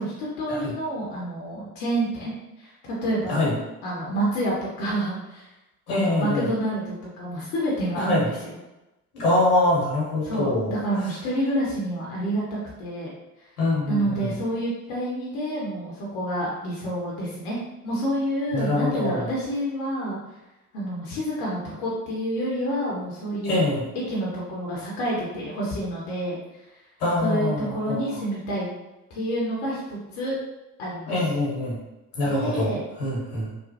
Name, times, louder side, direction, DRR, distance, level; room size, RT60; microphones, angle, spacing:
voice 1, 0.0-3.4 3.8-5.5 5.9-8.6 10.2-13.1 13.9-17.6 17.8-20.2 20.7-23.6 23.9-26.3 27.2-28.7 29.1-30.4 30.8-31.1 32.2-32.8, right 1 dB, 70° left, -5 dB, 0.9 m, -28 dB
voice 2, 5.9-6.5 7.9-8.3 9.1-10.8 13.6-14.3 18.5-19.3 23.4-23.8 27.0-28.0 31.1-31.8 32.2-33.5, left 2 dB, 90° left, -6 dB, 1.2 m, -24 dB
3.0 x 2.0 x 2.8 m, 0.98 s
hypercardioid pair, 60°, 44 cm